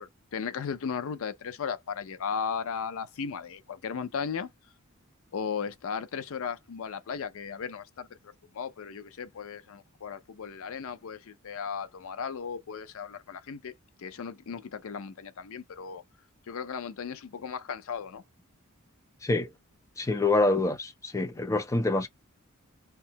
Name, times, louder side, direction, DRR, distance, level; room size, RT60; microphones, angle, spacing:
voice 1, 0.0-4.5 5.3-13.7 14.0-16.0 16.5-18.2, left 6 dB, 65° left, 0.5 m, -36 dB
voice 2, 20.0-22.1, left 2 dB, 15° left, 0.5 m, -26 dB
2.7 x 2.2 x 2.8 m
head